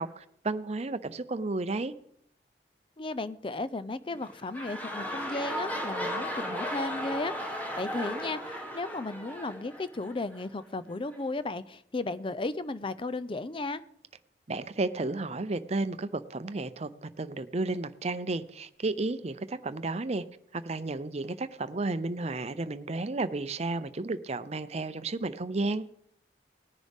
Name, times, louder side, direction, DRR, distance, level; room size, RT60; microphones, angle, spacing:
voice 1, 0.0-1.9 14.5-20.2 20.5-25.8, right 2 dB, 35° right, 13 dB, 0.6 m, -32 dB
voice 2, 3.0-13.8, left 2 dB, 30° left, 14 dB, 0.5 m, -35 dB
sound 1, 4.1-10.4 11.1-11.2, equal, 10° left, 1.8 m, -36 dB
19.0 x 10.5 x 3.6 m, 0.72 s
head